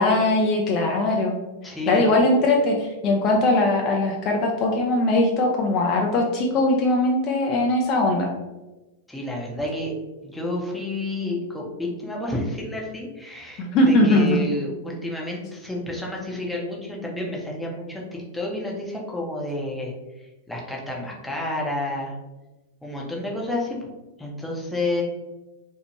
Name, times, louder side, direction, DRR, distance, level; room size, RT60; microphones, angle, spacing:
voice 1, 0.0-1.4 1.9-8.3 13.6-14.4, left 2 dB, 40° left, 1 dB, 0.4 m, -20 dB
voice 2, 1.6-2.0 9.1-9.9 10.2-22.1 22.8-23.9 24.2-25.0, left 1 dB, 5° left, -3 dB, 0.7 m, -30 dB
2.7 x 2.0 x 2.9 m, 1.1 s
hypercardioid pair, 105°, 0 cm